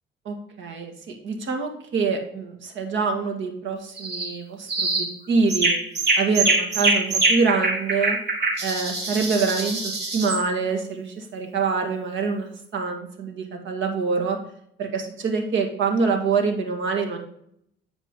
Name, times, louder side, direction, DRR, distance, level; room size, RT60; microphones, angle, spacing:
voice 1, 0.2-5.7 6.2-8.2 8.6-14.4 14.8-17.2, right 4 dB, 75° right, 3 dB, 1.8 m, -25 dB
sound 1, 4.0-4.3 4.7-5.1 5.5-10.4, right 2 dB, 55° right, 2.6 m, -24 dB
9.7 x 4.9 x 3.7 m, 0.70 s
cardioid pair, 90°, 20 cm